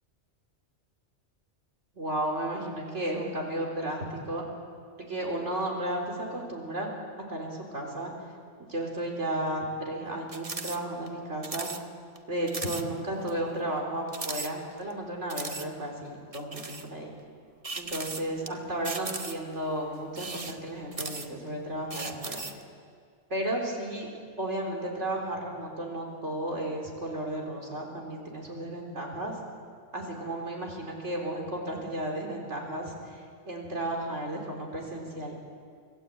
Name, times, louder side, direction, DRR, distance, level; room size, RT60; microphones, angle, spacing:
voice 1, 1.9-4.4 5.0-6.9 7.3-8.1 8.7-11.7 12.3-17.1 17.7-22.5 23.3-24.1 24.4-29.4 29.9-35.3, right 1 dB, 85° right, 0 dB, 4.1 m, -33 dB
sound 1, 10.3-10.8 11.1-11.2 11.4-11.8 12.2-12.3 12.5-12.8 13.3-13.4 14.1-14.9 15.3-15.7 16.3-16.9 17.6-18.5 18.8-19.5 20.1-21.5 21.9-22.6, right 3 dB, 30° right, 1.0 m, -37 dB
25.0 x 15.5 x 8.5 m, 2.1 s
omnidirectional pair, 1.2 m